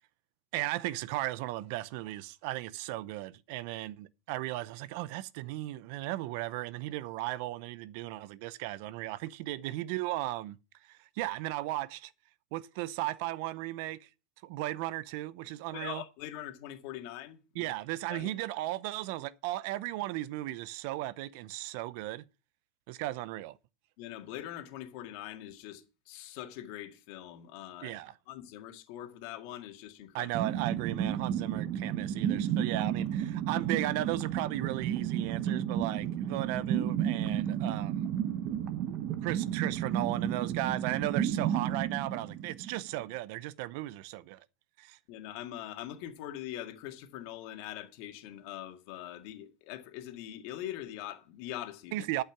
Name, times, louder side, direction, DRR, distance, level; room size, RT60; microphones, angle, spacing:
voice 1, 0.5-10.6 10.9-12.1 12.5-14.1 14.4-16.0 17.5-22.2 22.9-23.6 27.8-28.1 30.1-38.1 39.2-44.4 44.8-45.0 51.9-52.2, right 16 dB, 70° right, 0.6 m, -36 dB
voice 2, 15.7-17.7 18.1-18.3 24.0-30.3 45.1-52.0, left 12 dB, 65° left, 1.9 m, -43 dB
sound 1, 30.3-43.0, right 10 dB, 45° right, 1.0 m, -32 dB
12.0 x 5.7 x 6.0 m
supercardioid pair, 130°, 0 cm